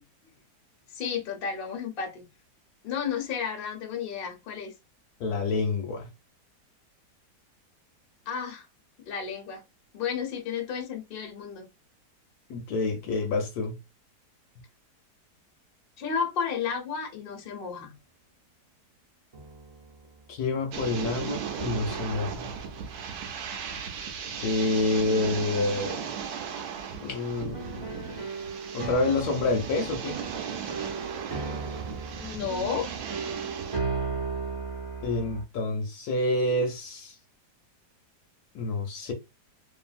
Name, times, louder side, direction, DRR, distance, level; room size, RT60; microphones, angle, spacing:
voice 1, 0.9-2.3 2.8-4.7 8.3-8.7 9.1-9.6 9.9-11.7 16.0-17.9 32.2-32.9, left 7 dB, 45° left, 0.8 m, -32 dB
voice 2, 5.2-6.1 12.5-13.8 20.3-22.5 24.4-26.1 27.0-28.3 28.7-30.2 35.0-37.2 38.5-39.1, left 2 dB, 70° left, 1.1 m, -28 dB
sound 1, 17.3-17.4 19.3-20.3 21.5-24.8 27.5-35.4, right 4 dB, 40° right, 0.4 m, -37 dB
sound 2, 20.7-33.8, right 7 dB, 70° right, 1.1 m, -37 dB
2.7 x 2.6 x 2.4 m
omnidirectional pair, 1.8 m